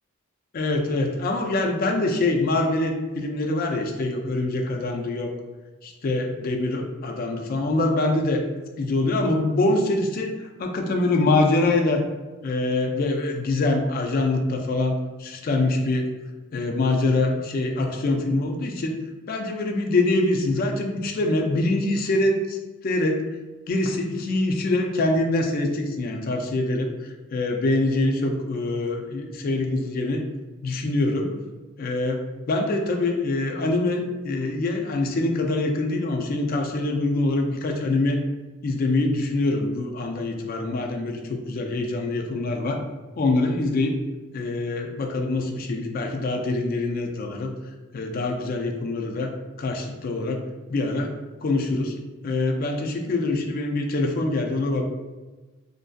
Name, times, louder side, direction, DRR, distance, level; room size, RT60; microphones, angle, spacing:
voice 1, 0.5-5.3 5.8-8.4 8.8-12.0 12.4-16.1 16.5-19.0 19.3-22.6 22.8-23.3 23.7-30.2 30.6-31.4 31.8-38.2 38.6-42.8 43.2-44.0 44.3-47.5 47.9-52.0 52.2-54.8, left 2 dB, 45° left, 2 dB, 0.3 m, -24 dB
2.5 x 2.2 x 2.4 m, 1.2 s
head